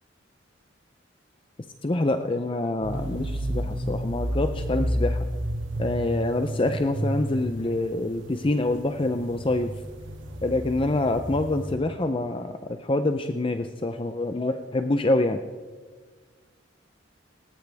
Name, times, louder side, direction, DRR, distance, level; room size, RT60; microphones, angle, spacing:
voice 1, 1.8-5.3 5.8-9.7 10.4-15.4, left 2 dB, 25° left, 8 dB, 0.6 m, -26 dB
sound 1, 2.8-11.7, equal, 85° right, 2.1 m, -31 dB
19.5 x 19.0 x 3.5 m, 1.5 s
head